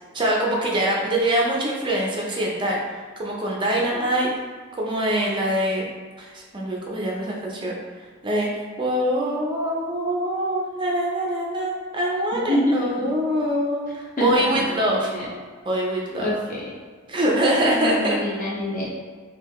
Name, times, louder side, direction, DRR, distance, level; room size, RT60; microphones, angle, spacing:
voice 1, 0.1-2.8 3.2-4.3 4.7-5.9 6.2-7.8 8.2-8.5 8.8-15.1 15.7-16.3 17.1-18.2, right 1 dB, 20° right, -2 dB, 0.5 m, -24 dB
voice 2, 12.3-13.1 14.2-15.2 16.2-16.6 17.8-18.8, left 1 dB, 40° left, -6 dB, 0.9 m, -26 dB
3.7 x 2.3 x 3.1 m, 1.5 s
head